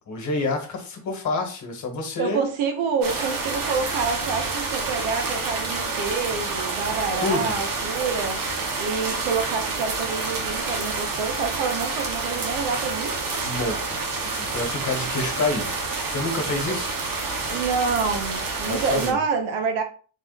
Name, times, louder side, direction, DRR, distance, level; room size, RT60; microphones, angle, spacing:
voice 1, 0.0-2.4 7.2-7.6 13.4-14.0 14.3-15.8 16.1-16.9 18.7-19.2, left 3 dB, 40° left, 1.4 m, -28 dB
voice 2, 2.2-8.4 8.8-13.2 17.5-19.8, right 5 dB, 90° right, 1.0 m, -27 dB
sound 1, 3.0-19.1, right 3 dB, 45° right, 1.0 m, -28 dB
4.0 x 2.4 x 4.0 m
cardioid pair, 140°, 46 cm